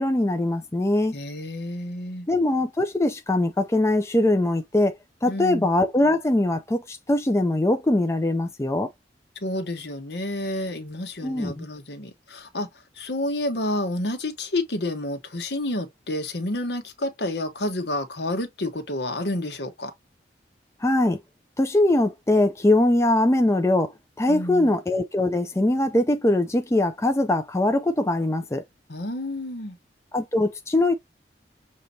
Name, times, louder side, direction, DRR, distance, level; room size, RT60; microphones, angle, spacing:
voice 1, 0.0-1.2 2.3-4.9 5.2-8.9 11.2-11.6 20.8-21.2 21.6-23.9 24.2-28.6 30.1-30.9, left 1 dB, 15° left, 0.4 m, -22 dB
voice 2, 1.1-2.3 5.3-5.7 9.4-12.7 13.0-19.9 24.3-24.7 28.9-29.8, left 1 dB, 75° left, 1.2 m, -29 dB
6.5 x 2.9 x 2.7 m
head